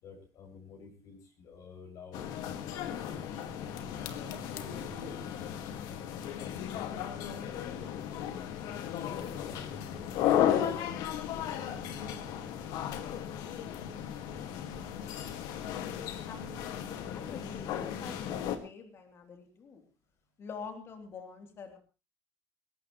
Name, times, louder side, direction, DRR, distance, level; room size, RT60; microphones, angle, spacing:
voice 1, 0.0-3.3 4.1-8.0 8.9-12.2, left 4 dB, 60° left, 0 dB, 6.2 m, -51 dB
sound 1, 2.1-18.6, left 10 dB, 75° left, 2.0 m, -35 dB
voice 2, 16.2-19.8 20.4-21.8, left 5 dB, 40° left, 4 dB, 3.4 m, -46 dB
21.5 x 17.5 x 3.2 m, 0.32 s
cardioid pair, 150°, 7 cm